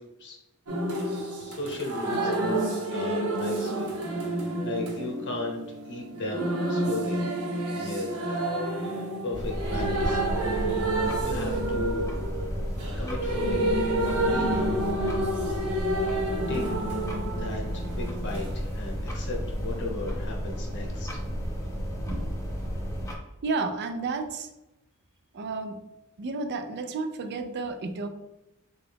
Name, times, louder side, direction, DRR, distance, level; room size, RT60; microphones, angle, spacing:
sound 1, 0.7-18.5 19.8-19.9, right 1 dB, 85° right, 0.9 m, -29 dB
voice 1, 1.4-7.2 7.8-8.5 8.8-8.9 9.2-12.1 13.0-13.7 14.2-15.6 16.5-16.7 17.4-21.2, left 2 dB, 55° left, 0 dB, 0.9 m, -36 dB
sound 2, 9.3-23.1, equal, 15° left, 0.7 m, -32 dB
voice 2, 23.4-24.5 25.3-25.8 26.2-28.1, right 3 dB, 50° right, 7 dB, 0.4 m, -31 dB
3.8 x 2.4 x 3.4 m, 0.96 s
head